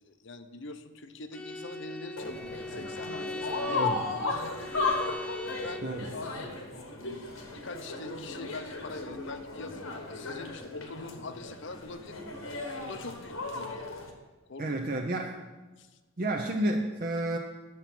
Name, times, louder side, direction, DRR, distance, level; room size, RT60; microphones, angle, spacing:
voice 1, 0.0-5.0 5.5-5.8 6.1-6.3 7.0-12.3 12.8-13.9 14.5-15.0 15.8-15.9, left 3 dB, 60° left, 10 dB, 0.7 m, -44 dB
Bowed string instrument, 1.3-6.0, left 2 dB, 5° left, 0.3 m, -40 dB
sound 1, 2.2-14.1, left 3 dB, 85° left, 1.4 m, -35 dB
voice 2, 14.6-15.4 16.2-17.4, right 1 dB, 45° right, 2 dB, 0.6 m, -30 dB
9.8 x 7.0 x 6.0 m, 1.2 s
head